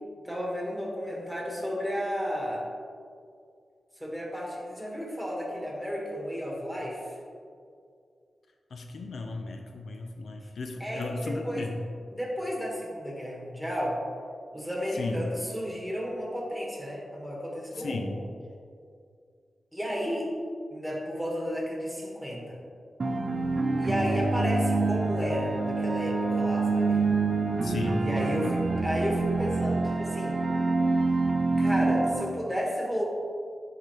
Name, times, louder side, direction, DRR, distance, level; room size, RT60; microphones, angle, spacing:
voice 1, 0.2-2.6 4.0-7.0 10.8-11.7 12.1-14.0 14.5-18.0 19.7-20.3 20.7-22.6 23.8-27.0 28.0-30.4 31.6-33.0, equal, ahead, -3 dB, 1.6 m, -32 dB
voice 2, 8.7-11.8 14.9-15.3 17.8-18.2 27.6-28.1, left 2 dB, 75° left, 4 dB, 0.5 m, -34 dB
sound 1, 23.0-32.1, right 3 dB, 45° right, 0.7 m, -26 dB
11.0 x 3.9 x 3.1 m, 2.3 s
wide cardioid pair, 85°, 0 cm